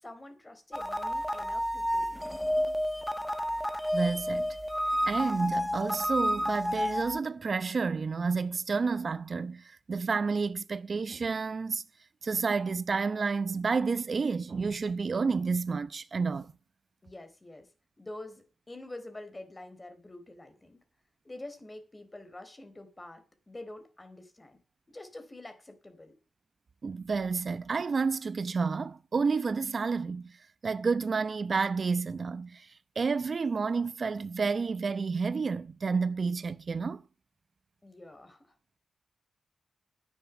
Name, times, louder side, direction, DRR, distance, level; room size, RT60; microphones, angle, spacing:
voice 1, 0.0-2.2 17.0-17.7 18.0-20.8 21.2-24.6 24.9-26.2 37.8-38.5, left 2 dB, 25° left, 4.0 m, -47 dB
sound 1, 0.7-7.2, equal, 10° left, 1.5 m, -30 dB
voice 2, 3.9-4.6 5.1-11.8 12.2-16.5 26.8-30.4 30.6-37.0, right 4 dB, 55° right, 0.8 m, -30 dB
11.0 x 9.1 x 7.1 m
cardioid pair, 55°, 0 cm